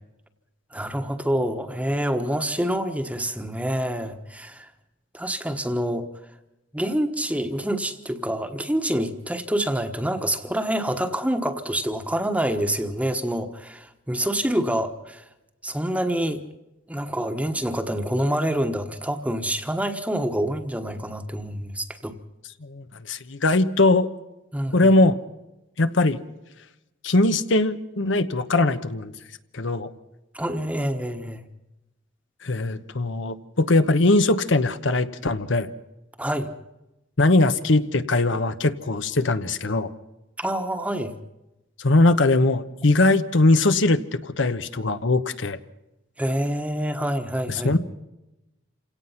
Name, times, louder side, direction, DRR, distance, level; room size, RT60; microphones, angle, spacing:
voice 1, 0.7-4.7 5.1-6.1 6.7-15.2 15.6-16.4 16.9-22.2 24.5-25.0 30.3-31.4 36.2-36.5 40.4-41.1 46.2-47.8, right 1 dB, 5° right, 7 dB, 1.2 m, -27 dB
voice 2, 22.6-24.1 24.7-25.2 25.8-26.2 27.0-29.1 29.5-29.9 32.4-35.7 37.2-39.9 41.8-45.6 47.6-47.8, left 2 dB, 70° left, 10 dB, 1.0 m, -20 dB
28.0 x 17.5 x 5.8 m, 0.96 s
head